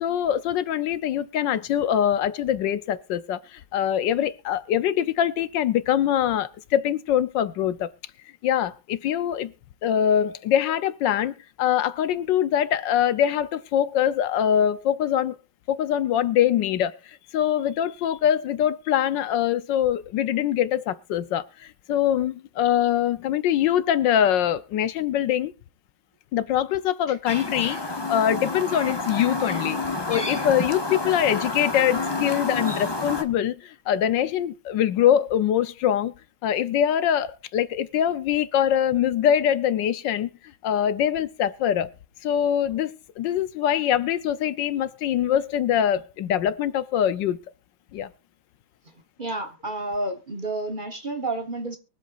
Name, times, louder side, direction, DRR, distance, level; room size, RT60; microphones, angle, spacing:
voice 1, 0.0-7.9 8.4-9.5 9.8-15.4 15.7-25.5 26.3-29.8 30.1-36.1 36.4-40.3 40.6-41.9 42.2-47.4 47.9-48.1, left 10 dB, 75° left, 1.4 m, -23 dB
Chirp tweet, 27.3-33.2, left 3 dB, 15° left, 1.0 m, -29 dB
voice 2, 49.2-51.8, right 2 dB, 30° right, 1.3 m, -30 dB
23.5 x 7.9 x 2.5 m
omnidirectional pair, 2.0 m